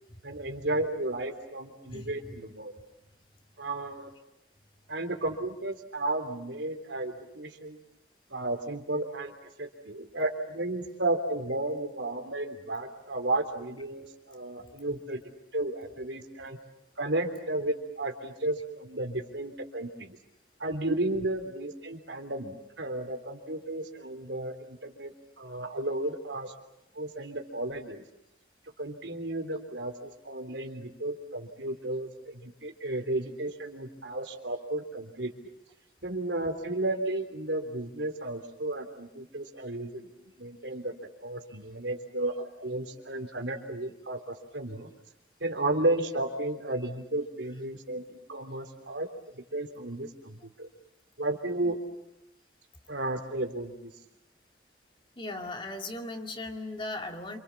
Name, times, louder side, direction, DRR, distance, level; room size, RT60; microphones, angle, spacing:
voice 1, 0.2-2.7 3.6-4.1 4.9-7.8 8.3-9.3 9.6-15.2 15.5-16.6 17.0-20.2 20.6-25.1 25.4-26.5 27.0-28.0 28.8-35.3 36.0-40.9 41.2-44.9 45.4-49.1 49.4-50.7 51.2-51.8 52.9-53.9, right 2 dB, 80° right, 5 dB, 3.6 m, -33 dB
voice 2, 1.9-2.4 51.6-51.7 55.2-57.4, left 2 dB, 30° left, 4 dB, 2.4 m, -38 dB
28.0 x 27.0 x 7.2 m, 0.86 s
head